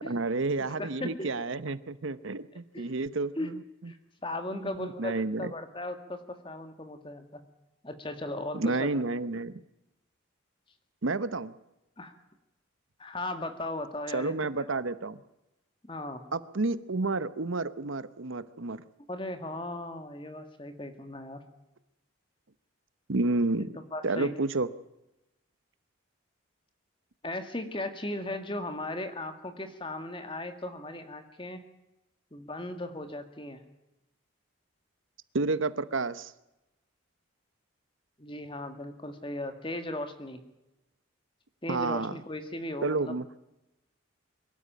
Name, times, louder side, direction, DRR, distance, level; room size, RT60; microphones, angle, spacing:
voice 1, 0.0-3.9 4.5-5.5 8.5-9.5 11.0-11.5 14.1-15.2 16.3-18.8 23.1-23.7 24.0-24.7 35.3-36.3 41.7-42.1 42.8-43.2, right 3 dB, 70° right, 15 dB, 0.9 m, -30 dB
voice 2, 0.8-1.5 2.7-2.9 3.4-3.5 3.9-4.0 4.2-7.4 7.8-8.9 12.0-12.1 13.0-14.3 14.6-14.8 15.9-16.2 19.1-21.4 23.6-24.3 27.2-31.6 32.3-33.6 38.2-40.4 41.6-43.1, left 1 dB, 25° left, 8 dB, 2.0 m, -37 dB
23.5 x 12.5 x 9.2 m, 0.93 s
head